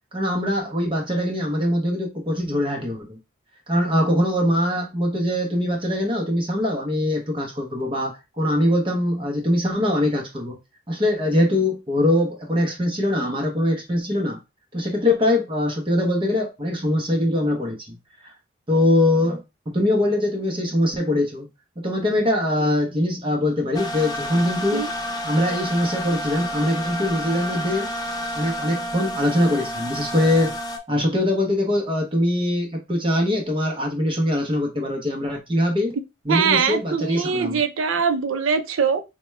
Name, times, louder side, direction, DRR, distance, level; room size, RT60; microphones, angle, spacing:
voice 1, 0.1-3.2 3.7-10.6 10.9-14.4 14.7-18.0 18.2-18.3 18.7-21.5 21.8-24.8 25.2-27.9 28.3-30.6 30.9-36.0 36.2-37.6, left 1 dB, 25° right, 0.7 m, -22 dB
sound 1, 23.7-30.8, equal, 20° left, 0.5 m, -30 dB
voice 2, 36.3-39.0, right 6 dB, 90° right, 0.5 m, -22 dB
4.3 x 2.2 x 3.1 m
head